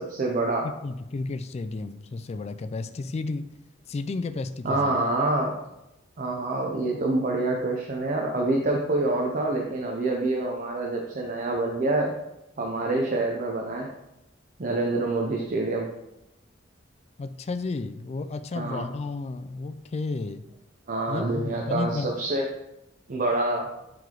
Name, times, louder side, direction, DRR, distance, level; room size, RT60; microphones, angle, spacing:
voice 1, 0.0-0.7 4.6-5.6 6.2-12.2 12.6-13.9 14.6-15.9 18.5-18.9 20.9-22.5 23.1-23.7, right 2 dB, 45° right, 0 dB, 0.7 m, -26 dB
voice 2, 0.6-3.5 3.9-5.0 17.2-20.5 21.1-22.1, left 3 dB, 35° left, 11 dB, 0.3 m, -32 dB
9.1 x 3.4 x 3.8 m, 0.90 s
head